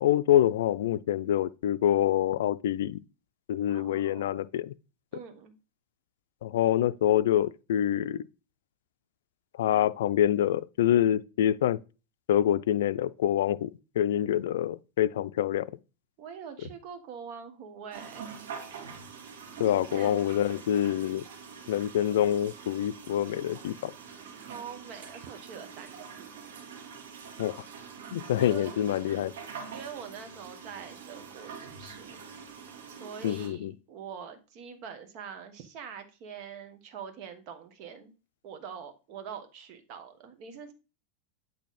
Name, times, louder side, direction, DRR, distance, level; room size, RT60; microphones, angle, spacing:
voice 1, 0.0-3.0 3.5-4.7 6.4-8.2 9.5-11.8 12.3-13.7 14.0-15.7 19.6-21.2 21.7-23.9 27.4-27.5 28.1-29.3 33.2-33.7, left 11 dB, 80° left, 0.4 m, -26 dB
voice 2, 3.7-4.3 5.1-5.5 16.2-18.3 19.9-20.1 24.3-26.3 28.4-28.7 29.7-32.2 32.9-38.1 38.4-40.7, right 7 dB, 45° right, 1.4 m, -44 dB
sound 1, 17.9-33.5, right 6 dB, 80° right, 1.9 m, -45 dB
8.5 x 3.3 x 4.2 m
supercardioid pair, 140°, 0 cm